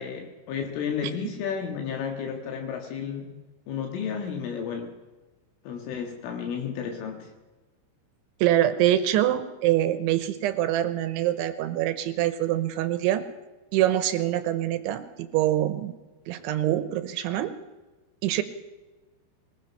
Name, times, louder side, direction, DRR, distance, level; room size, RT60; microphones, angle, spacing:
voice 1, 0.0-3.4 3.7-4.9 5.7-7.3, left 7 dB, 75° left, 3 dB, 4.1 m, -32 dB
voice 2, 8.4-13.2 13.7-15.9 16.3-17.5 18.2-18.4, right 13 dB, 80° right, 11 dB, 3.1 m, -25 dB
22.5 x 20.5 x 5.7 m, 1.2 s
omnidirectional pair, 5.8 m